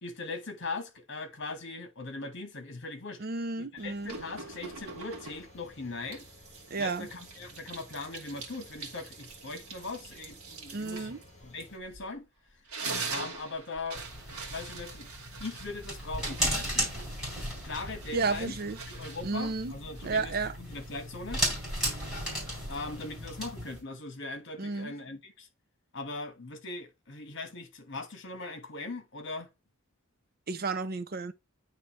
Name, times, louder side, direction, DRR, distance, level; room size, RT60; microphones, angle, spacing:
voice 1, 0.0-3.2 3.6-6.3 6.8-12.3 13.1-15.1 15.4-16.9 17.6-18.5 18.9-21.4 22.7-25.5 25.9-29.5, left 3 dB, 55° left, 1.4 m, -40 dB
voice 2, 3.2-4.2 6.7-7.1 10.7-11.2 18.1-18.8 19.2-19.7 20.0-20.5 24.6-24.9 30.5-31.3, right 3 dB, 45° right, 0.5 m, -32 dB
sound 1, 3.8-11.8, left 1 dB, 30° left, 2.2 m, -56 dB
sound 2, 4.1-5.6 6.1-12.2 12.5-20.3, right 4 dB, 75° right, 1.5 m, -43 dB
sound 3, 13.9-23.8, equal, 5° right, 3.8 m, -36 dB
9.4 x 3.2 x 3.1 m
head